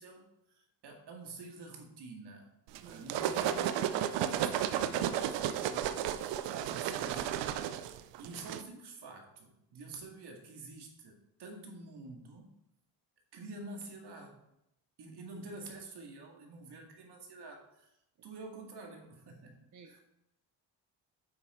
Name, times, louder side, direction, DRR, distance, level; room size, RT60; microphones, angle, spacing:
voice 1, 0.0-2.5 2.8-5.9 6.8-7.3 8.2-12.5 13.3-14.4 15.0-17.9 18.2-20.0, right 3 dB, 65° right, 1 dB, 2.2 m, -48 dB
sound 1, 2.7-8.6, right 10 dB, 85° right, 0.6 m, -33 dB
voice 2, 6.5-7.2 19.7-20.0, right 6 dB, 45° right, 3 dB, 0.9 m, -51 dB
7.9 x 5.9 x 4.3 m, 0.83 s
cardioid pair, 85°, 43 cm